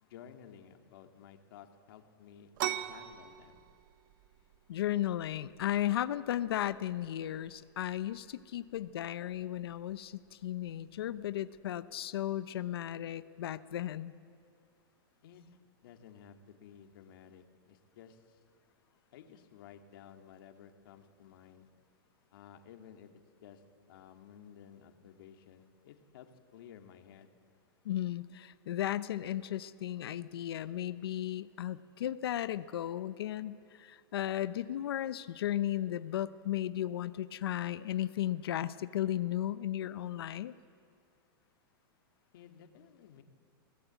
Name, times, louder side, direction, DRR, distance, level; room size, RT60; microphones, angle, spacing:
voice 1, 0.0-3.6 15.2-18.4 19.1-21.7 22.3-23.1 23.4-23.6 23.9-27.3 42.3-43.2, left 8 dB, 65° left, 5 dB, 2.1 m, -55 dB
sound 1, 2.6-12.0, right 12 dB, 55° right, 1.0 m, -45 dB
voice 2, 4.7-14.1 27.8-40.5, left 12 dB, 85° left, 14 dB, 0.8 m, -35 dB
23.5 x 17.5 x 8.3 m, 2.3 s
supercardioid pair, 150°, 12 cm